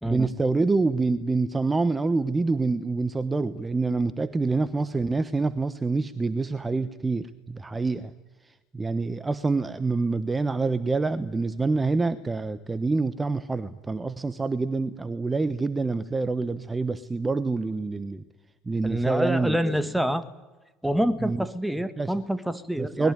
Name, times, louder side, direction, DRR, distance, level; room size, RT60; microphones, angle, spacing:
voice 1, 0.0-8.1 8.4-18.2 18.7-19.7 21.2-21.4 22.0-22.1 22.8-23.1, right 3 dB, 20° right, 14 dB, 1.2 m, -26 dB
voice 2, 18.8-20.3 20.8-23.1, equal, 5° right, 12 dB, 1.9 m, -27 dB
23.5 x 21.0 x 9.6 m, 1.2 s
hypercardioid pair, 65°, 0 cm